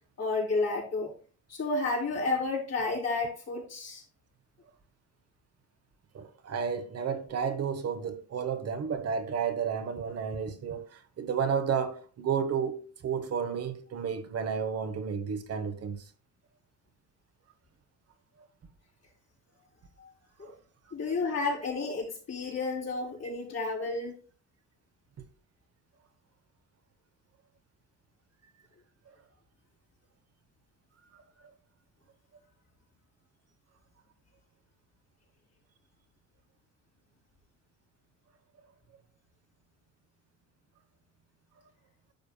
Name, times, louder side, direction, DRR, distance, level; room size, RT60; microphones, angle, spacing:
voice 1, 0.2-1.1 1.5-4.0 20.0-20.1 20.9-24.1, left 3 dB, 55° left, 4.1 m, -31 dB
voice 2, 6.1-16.1 20.4-20.5 21.1-21.2 25.2-25.3 31.4-31.5, right 6 dB, 55° right, 1.1 m, -32 dB
10.5 x 6.7 x 2.3 m
cardioid pair, 90°, 30 cm